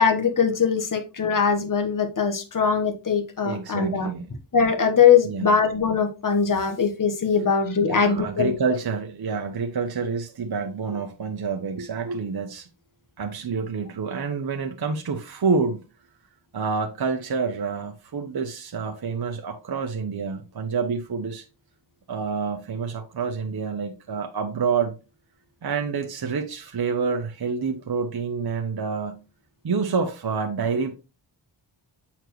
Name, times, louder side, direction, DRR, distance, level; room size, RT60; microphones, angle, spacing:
voice 1, 0.0-4.1 4.5-8.5, left 6 dB, 40° left, 1.3 m, -21 dB
voice 2, 3.4-4.3 5.2-5.5 7.8-12.7 13.2-15.8 16.5-21.4 22.1-25.0 25.6-29.2 29.6-30.9, right 5 dB, 50° right, 0.9 m, -28 dB
8.2 x 4.4 x 3.1 m
cardioid pair, 65°, 48 cm